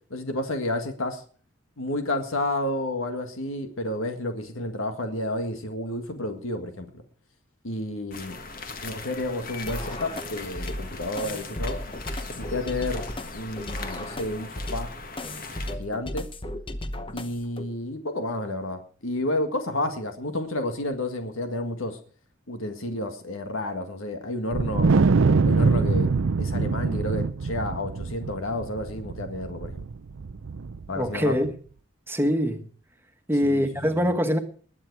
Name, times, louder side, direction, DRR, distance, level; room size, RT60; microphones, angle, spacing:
voice 1, 0.1-1.2 1.8-6.9 7.6-8.4 8.8-11.8 12.4-13.0 13.3-14.9 15.8-16.2 17.1-22.0 22.5-24.9 25.4-26.1 26.4-29.9 30.9-31.5 33.4-33.6 33.9-34.1, left 1 dB, 85° left, 7 dB, 1.8 m, -30 dB
sound 1, 8.1-15.8, left 3 dB, 45° left, 1.7 m, -39 dB
sound 2, 9.7-17.7, left 1 dB, 25° left, 0.9 m, -35 dB
Wind, 24.5-31.0, right 4 dB, 75° right, 0.5 m, -24 dB
voice 2, 30.9-31.5 32.1-32.7 33.3-34.4, equal, 10° right, 6 dB, 1.4 m, -23 dB
20.5 x 7.9 x 4.8 m, 0.44 s
head